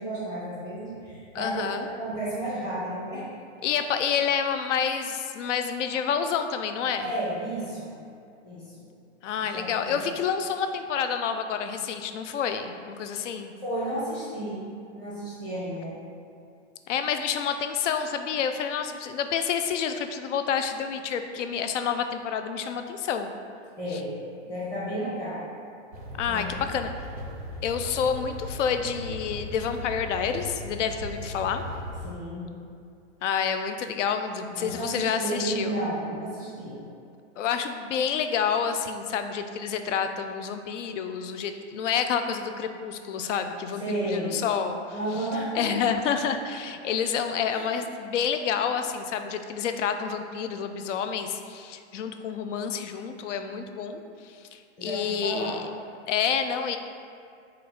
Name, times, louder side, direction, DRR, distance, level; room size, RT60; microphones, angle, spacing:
voice 1, 0.0-3.3 7.0-7.9 8.4-8.7 9.4-10.1 13.6-15.9 23.8-24.1 24.4-25.5 26.2-26.5 32.0-32.5 34.5-36.8 43.8-44.3 44.9-45.8 47.5-47.7 54.8-55.6, right 1 dB, 10° left, -9 dB, 0.7 m, -32 dB
voice 2, 1.3-1.8 3.6-7.1 9.2-13.5 16.9-23.3 26.2-26.9 27.6-31.6 33.2-35.8 37.4-44.8 45.5-55.6 56.1-56.8, left 7 dB, 75° left, 7 dB, 0.5 m, -28 dB
sound 1, 25.9-32.1, left 1 dB, 35° right, 0.4 m, -38 dB
4.5 x 2.4 x 4.8 m, 2.4 s
supercardioid pair, 170°, 37 cm